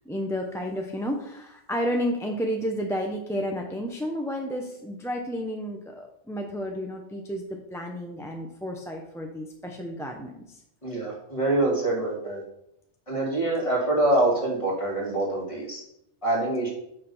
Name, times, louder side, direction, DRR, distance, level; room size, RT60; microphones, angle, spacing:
voice 1, 0.0-10.6, equal, 5° left, 1 dB, 0.6 m, -31 dB
voice 2, 10.8-12.4 13.1-15.8 16.2-16.7, right 2 dB, 25° left, -3 dB, 2.2 m, -25 dB
6.2 x 5.8 x 5.5 m, 0.78 s
omnidirectional pair, 1.2 m